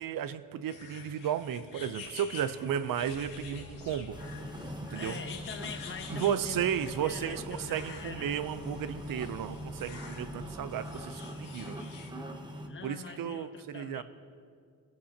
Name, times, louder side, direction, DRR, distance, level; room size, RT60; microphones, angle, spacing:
voice 1, 0.0-4.2 4.9-5.2 6.1-11.8 12.8-14.0, right 9 dB, 80° right, 12 dB, 0.7 m, -34 dB
sound 1, 0.7-12.1, left 5 dB, 75° left, 2.0 m, -49 dB
sound 2, 3.0-11.1, left 1 dB, 20° left, 2.0 m, -49 dB
sound 3, 4.1-12.7, equal, 15° right, 0.9 m, -43 dB
voice 2, 4.9-8.4 9.1-9.3 12.7-14.0, left 5 dB, 35° left, 6 dB, 1.0 m, -44 dB
26.0 x 15.5 x 2.9 m, 2.3 s
wide cardioid pair, 180°, 34 cm